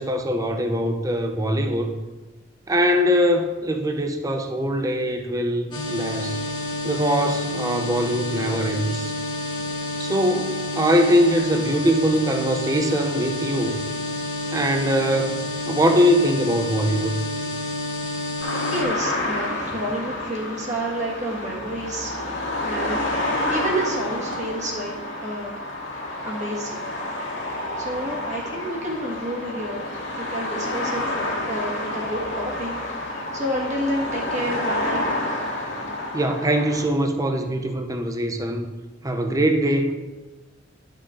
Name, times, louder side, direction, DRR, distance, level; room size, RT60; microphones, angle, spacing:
voice 1, 0.0-1.9 2.7-6.4 6.8-9.1 10.0-13.8 14.5-17.2 36.1-38.7 39.0-39.9, equal, 15° right, 5 dB, 0.7 m, -22 dB
sound 1, 5.7-18.8, left 1 dB, 25° left, 1.7 m, -29 dB
sound 2, 18.4-36.8, left 1 dB, 70° left, 2.0 m, -29 dB
voice 2, 18.6-22.2 22.6-24.9 25.2-25.6 26.2-26.9 27.8-29.9 30.2-35.1, right 1 dB, 40° right, -4 dB, 1.7 m, -30 dB
11.0 x 6.5 x 3.8 m, 1.2 s
head